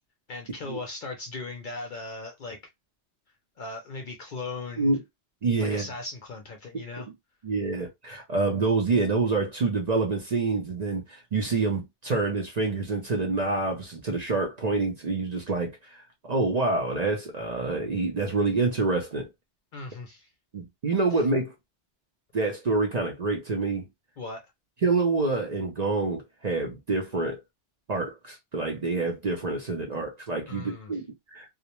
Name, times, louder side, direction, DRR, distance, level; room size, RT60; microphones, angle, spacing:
voice 1, 0.3-2.6 3.6-4.9 5.6-7.1 19.7-20.3 24.2-24.4 30.5-30.9, left 3 dB, 55° left, 0.6 m, -38 dB
voice 2, 5.4-5.9 7.0-7.1 7.4-19.3 20.5-21.5 22.3-23.9 24.8-27.4 27.9-31.4, right 3 dB, 45° right, 0.6 m, -27 dB
2.4 x 2.1 x 2.9 m
omnidirectional pair, 1.2 m